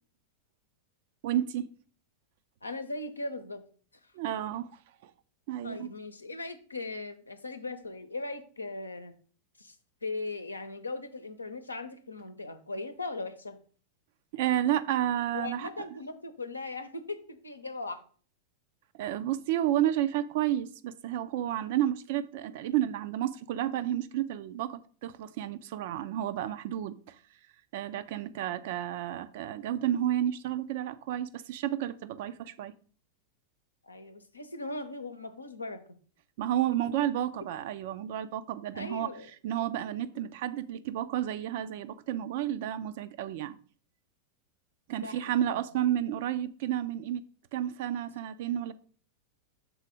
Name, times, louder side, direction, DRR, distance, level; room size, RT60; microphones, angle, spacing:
voice 1, 1.2-1.7 4.1-4.7 5.0-5.1 5.5-5.9 14.3-15.7 18.9-27.2 27.7-32.7 36.4-39.1 39.4-43.5 44.9-47.2 47.5-48.7, right 11 dB, 50° right, 0.5 m, -31 dB
voice 2, 2.6-3.6 5.6-9.1 9.6-9.8 10.0-13.6 15.3-18.0 33.8-36.0 38.7-39.3 45.0-45.6, left 2 dB, 80° left, 0.7 m, -39 dB
6.2 x 4.0 x 5.1 m
figure-of-eight pair, 90°, 0 cm